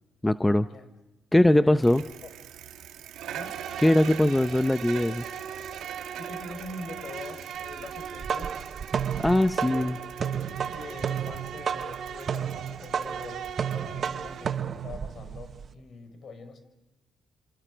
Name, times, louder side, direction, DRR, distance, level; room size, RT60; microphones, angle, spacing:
voice 1, 0.2-0.7 1.3-2.0 3.8-5.2 9.2-10.0, left 1 dB, 10° left, 11 dB, 0.7 m, -21 dB
voice 2, 1.5-2.0 3.3-3.6 6.2-8.7 9.2-9.3 9.6-9.8 10.2-16.6, left 3 dB, 55° left, 8 dB, 5.2 m, -44 dB
Bicycle, 1.8-14.9, right 10 dB, 90° right, 2.3 m, -44 dB
Insect, 3.1-14.6, right 8 dB, 70° right, 2.1 m, -41 dB
sound 1, 8.0-15.7, right 7 dB, 50° right, 1.1 m, -32 dB
28.5 x 27.5 x 5.1 m, 1.0 s
cardioid pair, 90°, 0 cm